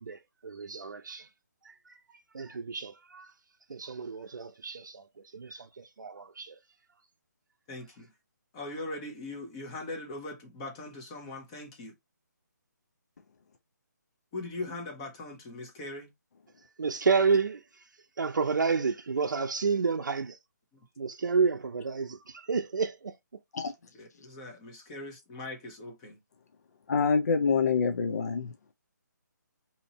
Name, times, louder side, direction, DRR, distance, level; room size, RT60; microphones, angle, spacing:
voice 1, 0.0-1.3 1.6-3.3 3.7-6.6 16.8-17.9 18.2-20.4 21.0-23.2, right 5 dB, 75° right, 0.6 m, -30 dB
voice 2, 7.7-8.1 8.5-11.9 14.3-16.1 20.7-20.8 23.9-26.2, left 2 dB, 15° left, 0.8 m, -40 dB
voice 3, 26.9-28.5, left 5 dB, 55° left, 0.5 m, -26 dB
2.8 x 2.6 x 4.0 m
hypercardioid pair, 165°, 10 cm